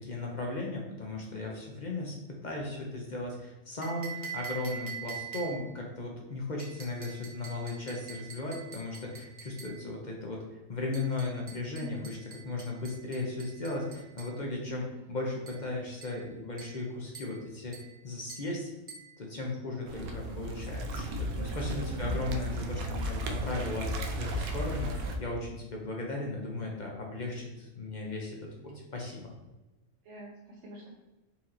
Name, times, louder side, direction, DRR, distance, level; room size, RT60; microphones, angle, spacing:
voice 1, 0.0-10.4 10.7-12.2 12.4-17.8 18.0-18.7 19.2-24.9 25.2-29.3, left 2 dB, 45° left, -1 dB, 0.6 m, -36 dB
sound 1, 3.8-5.8 6.6-9.8 10.9-14.4 15.5-15.7 16.0-16.3 16.6-16.9 17.1-17.4 17.7-18.0 18.3-18.5 18.9-19.1, right 7 dB, 35° right, 0.6 m, -45 dB
sound 2, 19.9-25.2, equal, 75° right, 1.0 m, -34 dB
voice 2, 21.6-22.2 30.0-31.0, equal, 55° right, -3 dB, 1.0 m, -46 dB
4.3 x 2.9 x 3.7 m, 1.1 s
omnidirectional pair, 1.5 m